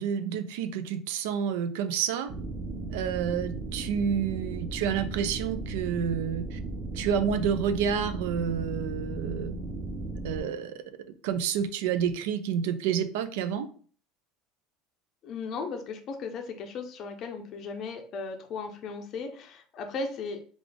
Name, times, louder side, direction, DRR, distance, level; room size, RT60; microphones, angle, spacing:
voice 1, 0.0-2.3 2.9-6.6 6.9-9.5 10.2-10.8 11.2-13.7, right 8 dB, 80° right, 10 dB, 0.4 m, -29 dB
sound 1, 2.3-10.4, right 2 dB, 30° right, 0.6 m, -36 dB
voice 2, 15.2-20.4, left 4 dB, 35° left, 4 dB, 0.5 m, -36 dB
3.8 x 2.4 x 3.3 m, 0.43 s
cardioid pair, 170°, 0 cm